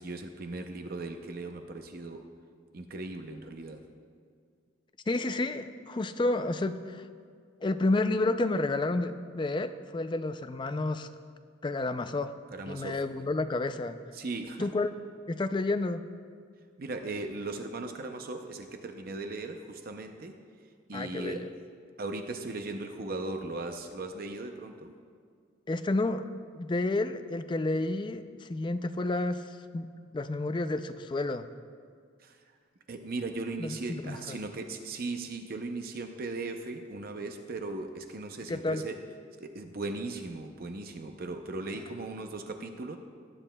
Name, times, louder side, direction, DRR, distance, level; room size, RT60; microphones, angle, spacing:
voice 1, 0.0-2.2 2.7-3.8 12.5-13.0 14.1-14.7 16.8-20.3 20.9-21.5 22.0-24.9 32.2-32.4 32.9-39.0 39.4-43.0, right 2 dB, 50° right, 5 dB, 0.6 m, -38 dB
voice 2, 5.1-7.1 7.6-11.1 11.6-12.3 12.7-14.0 14.6-14.9 15.3-16.0 20.9-21.5 25.7-26.3 26.5-31.4 33.6-34.4 38.5-38.8, left 2 dB, 25° left, 10 dB, 0.4 m, -30 dB
19.5 x 9.6 x 2.2 m, 2.1 s
head